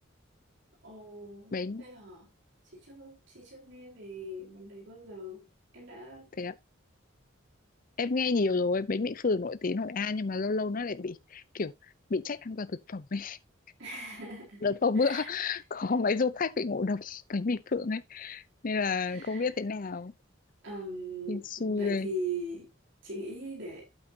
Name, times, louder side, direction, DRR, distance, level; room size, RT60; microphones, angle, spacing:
voice 1, 0.8-2.3 2.7-5.5 5.7-6.3 13.8-14.6 15.0-15.3 19.0-19.5 20.6-22.7 23.0-23.9, right 2 dB, 65° right, 4.1 m, -40 dB
voice 2, 1.5-1.8 6.4-6.5 8.0-11.7 12.1-13.4 14.6-20.1 21.3-22.1, left 4 dB, 45° left, 0.6 m, -30 dB
8.8 x 8.1 x 2.8 m
head